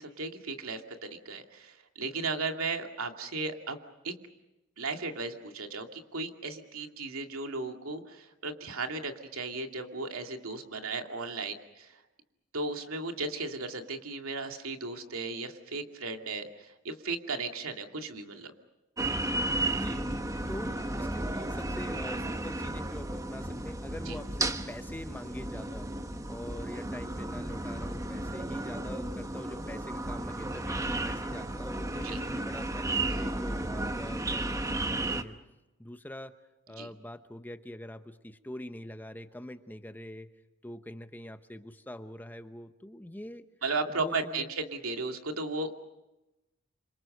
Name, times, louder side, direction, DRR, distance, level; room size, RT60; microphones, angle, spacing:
voice 1, 0.0-3.8 4.0-4.1 4.8-12.0 12.5-18.5 24.1-24.2 32.0-32.2 36.8-36.9 43.6-45.7, right 3 dB, 80° right, 5 dB, 2.5 m, -35 dB
sound 1, 19.0-35.2, right 2 dB, 15° right, 1.1 m, -33 dB
voice 2, 19.7-20.1 20.5-25.9 26.3-35.4 35.8-36.3 36.7-40.3 40.6-43.4 43.9-44.5, left 1 dB, 10° left, 9 dB, 0.9 m, -44 dB
28.5 x 25.5 x 6.6 m, 0.97 s
head